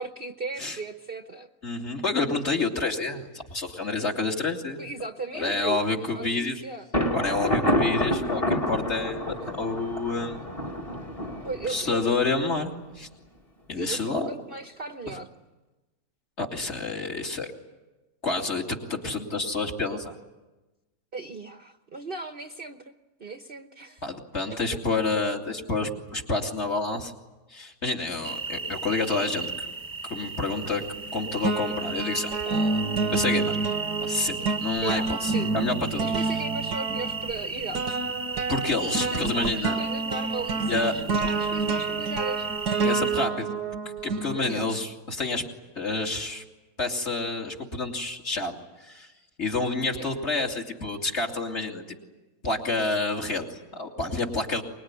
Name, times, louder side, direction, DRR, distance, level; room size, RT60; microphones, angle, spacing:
voice 1, 0.0-1.5 4.8-6.9 11.4-12.1 13.7-15.3 21.1-22.9 23.2-24.0 24.5-24.6 34.8-35.5 36.0-38.0 38.9-42.5 44.5-44.7 49.9-50.1, right 3 dB, 40° right, 6 dB, 1.0 m, -37 dB
voice 2, 1.6-4.9 5.3-6.6 7.1-10.4 11.7-13.1 13.7-14.3 16.4-17.5 18.2-20.1 24.0-27.1 27.5-29.7 30.0-30.8 31.1-32.8 33.1-33.6 34.0-36.0 38.5-39.8 40.7-40.9 42.8-43.5 44.0-45.4 45.8-46.4 46.8-48.5 48.8-49.1 49.4-51.8 52.4-54.6, left 3 dB, 40° left, 0 dB, 2.9 m, -29 dB
Thunder, 6.9-12.6, left 1 dB, 20° left, 1.8 m, -28 dB
sound 1, 28.2-43.3, right 4 dB, 15° right, 1.0 m, -35 dB
sound 2, 30.7-31.1 31.4-44.9, right 4 dB, 80° right, 1.6 m, -29 dB
25.0 x 21.5 x 9.7 m, 1.1 s
omnidirectional pair, 1.7 m